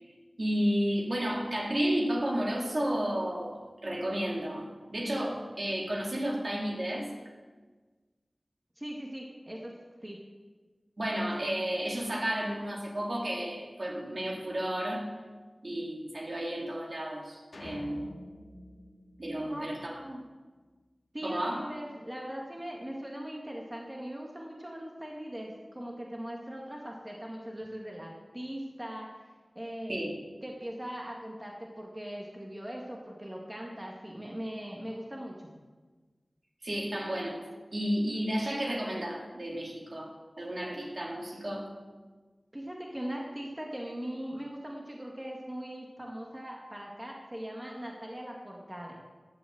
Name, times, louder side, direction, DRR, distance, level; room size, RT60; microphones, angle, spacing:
voice 1, 0.4-7.1 11.0-15.0 15.6-18.0 19.2-19.9 21.2-21.6 29.9-30.1 36.6-37.4 37.7-40.1 40.4-41.7, equal, 55° right, -2 dB, 2.9 m, -32 dB
voice 2, 8.8-9.7 10.0-10.2 19.4-20.2 21.1-29.1 29.6-29.9 30.4-35.5 42.5-49.0, equal, 20° right, -1 dB, 2.0 m, -40 dB
sound 1, 17.5-20.1, left 1 dB, 75° left, 2.1 m, -47 dB
12.0 x 7.3 x 7.9 m, 1.3 s
wide cardioid pair, 50°, 0 cm